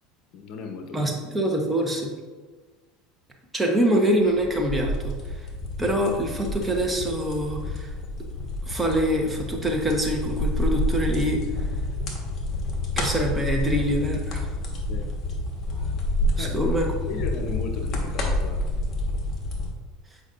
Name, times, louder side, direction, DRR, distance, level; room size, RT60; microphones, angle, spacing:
voice 1, 0.3-1.2 1.5-1.6 14.9-15.1 16.4-16.7 17.1-18.6, left 4 dB, 60° left, 4 dB, 0.8 m, -35 dB
voice 2, 0.9-2.2 3.5-5.5 5.8-7.9 8.6-11.4 12.9-14.5 16.4-16.8, right 1 dB, 10° right, 1 dB, 1.1 m, -25 dB
sound 1, 4.3-19.7, left 1 dB, 35° left, 1.4 m, -28 dB
8.3 x 5.0 x 2.5 m, 1.4 s
supercardioid pair, 105°, 0 cm